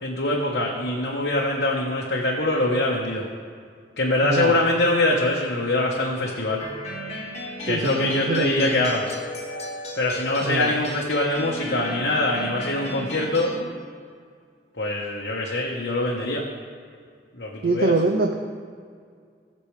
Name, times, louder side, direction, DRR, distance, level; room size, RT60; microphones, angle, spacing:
voice 1, 0.0-3.2 4.0-6.6 7.6-9.1 9.9-13.5 14.8-16.4 17.4-17.9, left 2 dB, 65° left, -3 dB, 1.3 m, -23 dB
voice 2, 4.2-4.6 7.6-8.9 10.4-10.7 17.6-18.4, right 3 dB, 55° right, 3 dB, 0.7 m, -24 dB
sound 1, 6.6-13.6, left 1 dB, 40° left, 1.6 m, -35 dB
19.0 x 6.7 x 3.3 m, 2.1 s
head